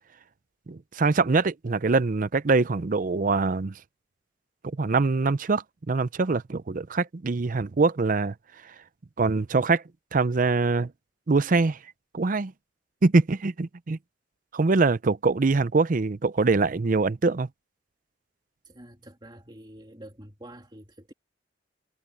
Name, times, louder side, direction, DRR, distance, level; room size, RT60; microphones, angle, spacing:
voice 1, 0.7-3.8 4.8-8.3 8.6-8.7 9.2-9.8 10.1-10.9 11.3-11.8 12.1-12.5 13.0-14.0 14.5-17.5, right 3 dB, 45° right, 0.5 m, -23 dB
voice 2, 18.6-21.1, right 1 dB, 25° right, 2.7 m, -47 dB
head